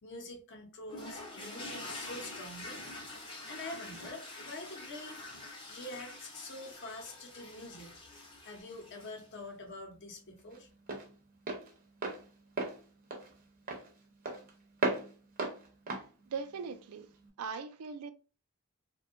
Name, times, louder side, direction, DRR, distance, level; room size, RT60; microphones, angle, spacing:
voice 1, 0.0-2.8 3.5-5.3 5.7-8.0 8.4-10.7, left 2 dB, 55° left, 0.7 m, -45 dB
sound 1, 0.9-9.4, left 2 dB, 25° left, 0.6 m, -46 dB
Walk footsteps, 8.6-17.3, right 3 dB, 40° right, 0.6 m, -39 dB
voice 2, 16.3-17.1 17.4-18.1, right 5 dB, 90° right, 0.4 m, -39 dB
2.6 x 2.2 x 2.5 m
head